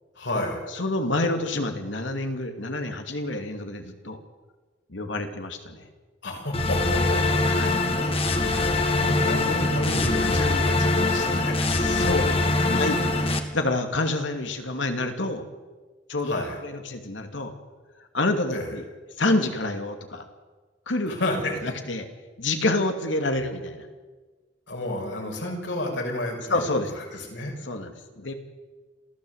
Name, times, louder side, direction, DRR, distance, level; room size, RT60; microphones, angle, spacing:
voice 1, 0.1-0.6 6.2-7.6 7.9-11.7 12.9-13.0 16.2-16.6 18.5-18.7 21.1-21.7 24.7-26.7 26.9-27.5, left 1 dB, 70° left, 1 dB, 5.8 m, -31 dB
voice 2, 0.7-4.2 4.9-5.9 7.4-7.7 11.7-13.0 13.5-15.5 16.1-16.3 16.6-17.5 18.1-18.8 19.2-20.3 20.9-21.1 21.6-22.1 22.4-23.9 26.5-26.9 27.7-28.3, left 2 dB, 90° left, 6 dB, 2.6 m, -28 dB
sound 1, 6.5-13.4, left 2 dB, 30° left, 2.0 m, -23 dB
26.5 x 15.0 x 8.1 m, 1.3 s
head